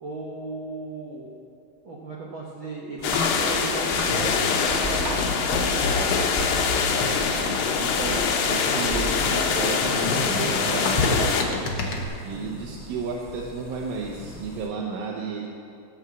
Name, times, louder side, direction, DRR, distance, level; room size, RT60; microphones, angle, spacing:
voice 1, 0.0-1.3 1.8-5.1 5.7-7.1 12.3-12.8, right 2 dB, 60° right, -4 dB, 1.2 m, -36 dB
sound 1, 3.0-11.4, left 6 dB, 80° left, 2.7 m, -24 dB
sound 2, 3.0-14.7, equal, 15° right, 0.8 m, -36 dB
sound 3, 3.9-12.0, left 3 dB, 55° left, 1.6 m, -31 dB
voice 2, 7.8-11.3 12.2-15.5, right 5 dB, 85° right, -2 dB, 2.7 m, -32 dB
16.5 x 5.6 x 7.5 m, 2.5 s
omnidirectional pair, 3.9 m